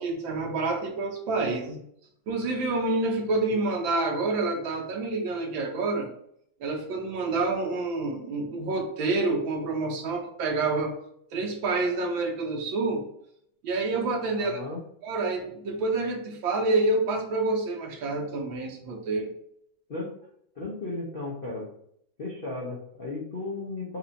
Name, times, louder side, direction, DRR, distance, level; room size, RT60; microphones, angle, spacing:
voice 1, 0.0-1.8 2.3-6.1 6.6-11.0 11.3-13.1 13.6-14.6 15.0-19.3, right 3 dB, 80° right, 1 dB, 1.6 m, -28 dB
voice 2, 14.3-14.8 19.9-20.1 20.6-21.7 22.2-24.0, left 2 dB, 50° left, -5 dB, 0.6 m, -35 dB
4.3 x 2.6 x 4.0 m, 0.71 s
omnidirectional pair, 2.1 m